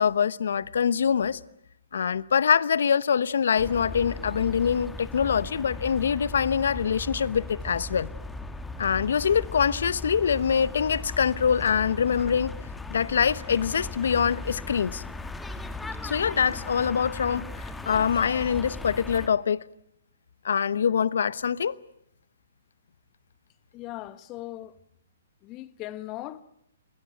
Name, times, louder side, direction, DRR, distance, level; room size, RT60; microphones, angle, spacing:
voice 1, 0.0-1.4 1.9-8.1 8.8-12.5 12.9-15.0 16.0-19.6 20.4-21.8, left 7 dB, 70° left, 0.9 m, -24 dB
sound 1, 3.6-19.3, left 2 dB, 5° left, 1.7 m, -38 dB
voice 2, 23.7-24.8 25.4-26.4, left 16 dB, 30° left, 1.4 m, -38 dB
27.0 x 20.5 x 9.0 m
hypercardioid pair, 135°, 0 cm